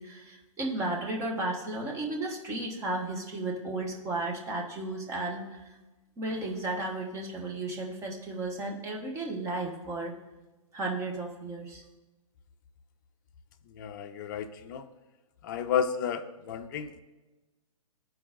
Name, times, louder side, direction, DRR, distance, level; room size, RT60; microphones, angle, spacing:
voice 1, 0.0-5.8 6.2-10.1 10.7-11.8, right 2 dB, 15° right, 0 dB, 1.0 m, -34 dB
voice 2, 13.7-14.9 15.4-17.0, left 8 dB, 35° left, 9 dB, 0.5 m, -32 dB
13.0 x 4.7 x 2.5 m, 1.1 s
figure-of-eight pair, 120°, 18 cm